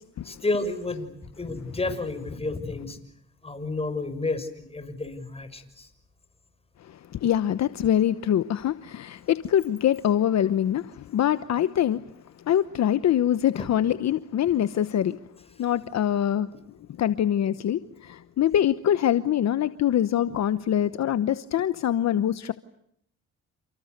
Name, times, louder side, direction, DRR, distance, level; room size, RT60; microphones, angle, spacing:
voice 1, 0.2-3.0 3.4-5.9 13.6-13.7, left 2 dB, 20° left, 6.3 m, -31 dB
voice 2, 6.8-12.0 12.5-15.2 15.6-16.5 17.0-22.5, left 10 dB, 60° left, 1.0 m, -24 dB
29.5 x 28.5 x 6.7 m
cardioid pair, 90°, 30 cm